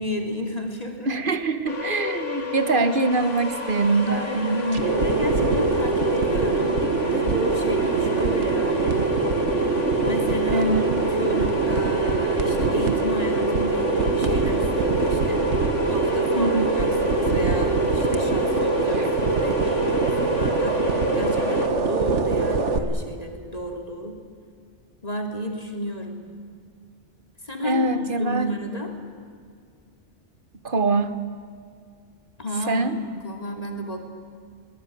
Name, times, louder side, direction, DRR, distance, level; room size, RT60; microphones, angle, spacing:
voice 1, 0.0-1.1 4.1-9.1 10.0-10.7 11.2-15.6 15.9-24.2 25.0-26.2 27.4-28.9 32.4-34.0, equal, 35° left, 3 dB, 2.9 m, -32 dB
voice 2, 1.1-4.8 10.5-10.9 16.3-16.7 27.6-28.6 30.6-31.1 32.7-33.0, right 3 dB, 45° right, 10 dB, 1.6 m, -23 dB
sound 1, 1.7-21.7, left 6 dB, 90° left, 2.3 m, -32 dB
sound 2, 3.1-22.8, right 4 dB, 75° right, 1.8 m, -23 dB
23.0 x 19.5 x 9.4 m, 2.2 s
omnidirectional pair, 1.2 m